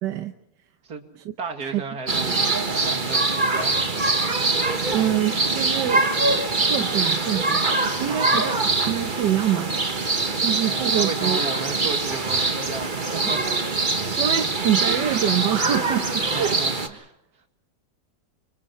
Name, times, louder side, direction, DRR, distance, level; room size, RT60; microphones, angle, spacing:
voice 1, 0.0-0.3 1.6-1.8 4.9-6.1 6.6-7.6 8.0-8.5 8.9-9.8 10.4-11.4 14.2-16.6, right 10 dB, 90° right, 7 dB, 1.6 m, -25 dB
voice 2, 1.4-2.4 2.8-3.8 8.1-8.5 10.7-13.8 16.3-17.1, right 4 dB, 65° right, 5 dB, 2.8 m, -34 dB
sound 1, 2.1-16.9, right 3 dB, 30° right, 1.6 m, -23 dB
29.5 x 25.5 x 4.4 m, 0.81 s
omnidirectional pair, 1.8 m